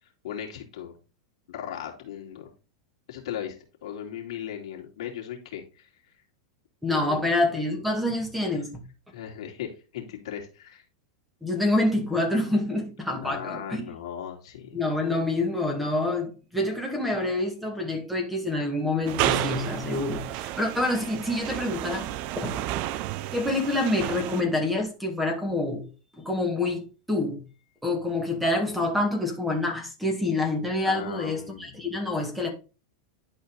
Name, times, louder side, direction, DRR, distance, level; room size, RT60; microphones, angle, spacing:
voice 1, 0.0-1.0 1.5-2.5 3.1-3.6 3.8-6.1 6.9-7.2 8.5-8.6 9.1-10.8 13.2-14.8 30.8-31.9, left 9 dB, 75° left, 2.7 m, -37 dB
voice 2, 6.8-8.8 11.4-13.8 14.7-22.2 22.4-22.6 23.3-25.9 26.2-26.8 27.1-27.4 27.8-32.5, left 2 dB, ahead, 2.3 m, -27 dB
sound 1, 19.1-24.4, right 14 dB, 50° right, 0.5 m, -31 dB
11.0 x 4.4 x 4.0 m
supercardioid pair, 130°, 3 cm